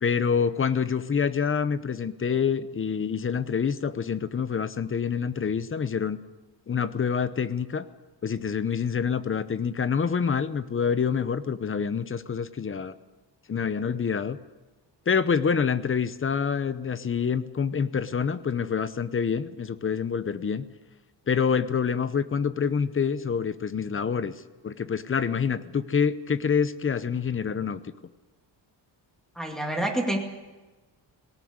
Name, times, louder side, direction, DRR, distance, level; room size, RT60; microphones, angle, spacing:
voice 1, 0.0-6.2 6.7-7.9 8.2-12.9 13.5-14.4 15.1-20.6 21.3-24.3 24.6-27.8, left 6 dB, 30° left, 14 dB, 0.8 m, -26 dB
voice 2, 29.4-30.2, right 1 dB, ahead, 1 dB, 2.3 m, -27 dB
19.0 x 18.0 x 9.6 m, 1.2 s
wide cardioid pair, 160°, 45 cm